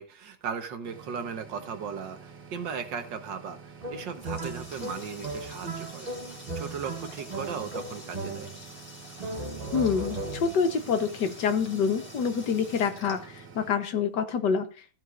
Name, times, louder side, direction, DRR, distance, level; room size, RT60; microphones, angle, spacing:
voice 1, 0.0-6.1 6.5-8.5, right 6 dB, 65° right, 7 dB, 1.8 m, -37 dB
sound 1, 0.8-13.7, right 5 dB, 50° right, 2.6 m, -49 dB
Water tap faucet, 3.8-14.0, left 1 dB, 15° left, 2.1 m, -48 dB
sound 2, 3.8-8.8 9.2-10.7, right 2 dB, 30° right, 0.9 m, -37 dB
voice 2, 9.7-14.7, left 6 dB, 65° left, 9 dB, 1.5 m, -27 dB
15.0 x 8.1 x 2.5 m, 0.35 s
omnidirectional pair, 2.2 m